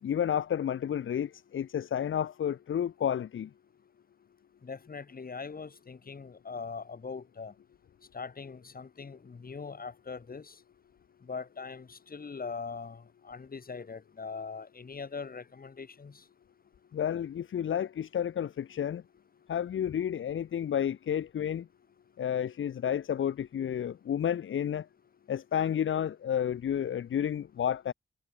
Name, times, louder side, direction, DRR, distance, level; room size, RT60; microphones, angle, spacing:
voice 1, 0.0-3.5 16.9-19.0 19.5-21.7 22.2-24.9 25.3-27.9, left 9 dB, 80° left, 1.3 m, -31 dB
voice 2, 4.6-7.5 8.1-10.6 11.2-16.2, left 5 dB, 45° left, 4.9 m, -41 dB
cardioid pair, 80°, 20 cm